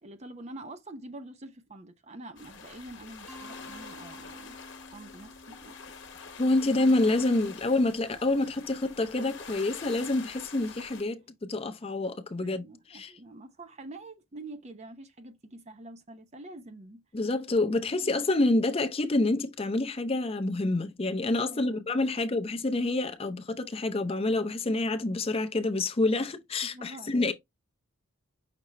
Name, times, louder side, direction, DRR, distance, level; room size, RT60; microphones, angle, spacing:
voice 1, 0.0-4.6 4.9-5.8 12.4-17.0 17.7-17.8 18.0-18.1 21.5-21.8 22.1-22.2 26.7-27.2, right 2 dB, 30° right, 0.6 m, -46 dB
sound 1, 2.4-11.0, left 5 dB, 55° left, 1.0 m, -46 dB
Mallet percussion, 3.3-8.0, left 1 dB, 5° left, 1.1 m, -52 dB
voice 2, 6.4-12.6 12.9-13.1 17.1-27.3, left 2 dB, 25° left, 0.5 m, -27 dB
5.9 x 2.8 x 3.2 m
head